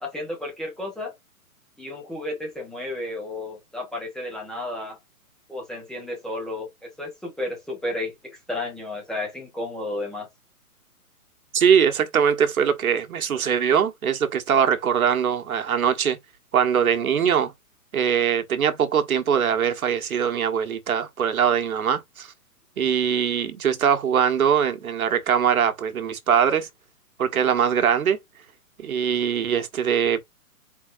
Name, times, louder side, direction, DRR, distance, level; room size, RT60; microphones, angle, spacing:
voice 1, 0.0-1.1 1.8-5.0 5.5-10.3, left 2 dB, ahead, 0.8 m, -32 dB
voice 2, 11.5-16.2 16.5-17.5 17.9-22.3 22.8-26.7 27.2-28.2 28.8-30.2, right 8 dB, 70° right, 1.3 m, -22 dB
4.7 x 4.0 x 2.5 m
hypercardioid pair, 145°, 44 cm